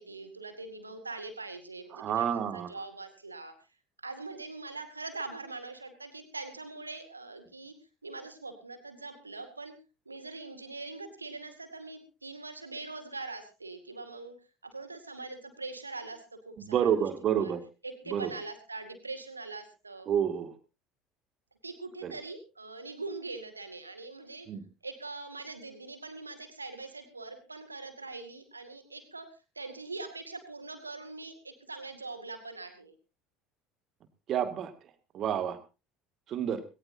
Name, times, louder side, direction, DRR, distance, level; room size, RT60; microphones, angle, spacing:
voice 1, 0.0-3.5 4.0-7.7 8.0-9.7 10.1-14.3 14.6-17.0 17.4-17.5 17.8-20.1 21.6-24.5 24.8-29.3 29.6-32.9, right 3 dB, 85° right, 8 dB, 2.3 m, -42 dB
voice 2, 1.9-2.7 16.6-17.6 18.1-18.3 20.1-20.5 22.0-22.1 24.5-24.6 34.3-34.7 35.1-35.6 36.3-36.6, right 9 dB, 40° right, 10 dB, 2.2 m, -29 dB
19.5 x 18.0 x 2.8 m, 0.30 s
figure-of-eight pair, 65°, 0 cm